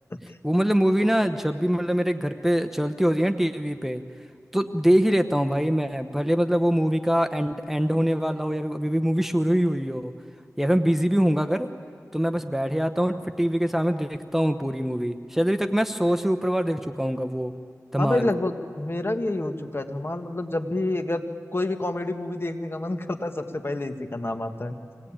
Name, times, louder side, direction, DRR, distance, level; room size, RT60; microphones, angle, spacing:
voice 1, 0.4-4.0 4.5-10.1 10.6-11.7 12.1-17.5 17.9-18.3, equal, 5° right, 7 dB, 1.0 m, -23 dB
voice 2, 18.0-21.3 21.5-24.8, left 2 dB, 40° left, 6 dB, 1.7 m, -28 dB
25.0 x 19.0 x 8.9 m, 2.1 s
cardioid pair, 45°, 6 cm